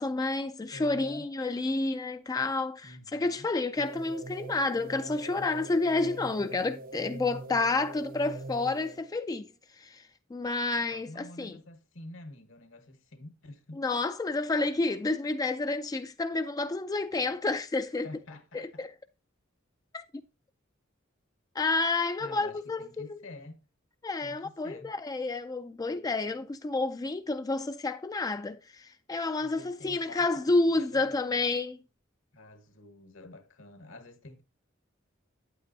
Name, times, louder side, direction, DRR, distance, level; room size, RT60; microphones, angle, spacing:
voice 1, 0.0-11.6 13.8-18.1 18.5-18.9 19.9-20.0 21.6-23.2 24.0-31.8, left 3 dB, 20° left, 0.3 m, -30 dB
voice 2, 0.7-1.3 2.8-3.5 10.9-13.8 18.0-18.9 22.2-23.7 24.2-24.9 29.4-31.4 32.3-34.4, left 2 dB, 70° left, 1.3 m, -48 dB
sound 1, 3.8-9.2, right 2 dB, 45° right, 0.6 m, -43 dB
8.9 x 8.3 x 2.6 m
head